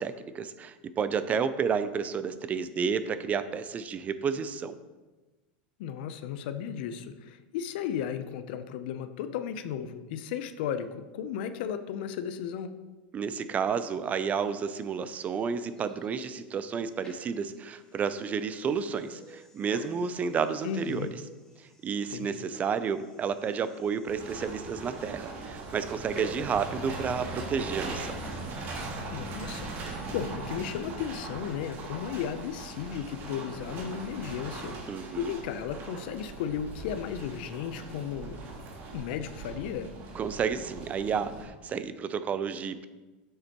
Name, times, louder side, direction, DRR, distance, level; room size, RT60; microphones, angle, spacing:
voice 1, 0.0-4.8 13.1-21.2 21.6-28.2 34.9-35.3 40.1-42.9, right 6 dB, 30° right, 13 dB, 0.4 m, -31 dB
voice 2, 5.8-12.7 20.6-21.1 22.1-22.4 29.1-29.7 30.1-34.8 35.2-38.4 38.9-39.9, left 8 dB, 70° left, 10 dB, 0.6 m, -35 dB
sound 1, 13.7-27.1, left 1 dB, 15° left, 1.8 m, -52 dB
sound 2, 24.1-41.4, right 3 dB, 45° right, 1.7 m, -40 dB
7.8 x 6.6 x 3.0 m, 1.2 s
supercardioid pair, 120°, 5 cm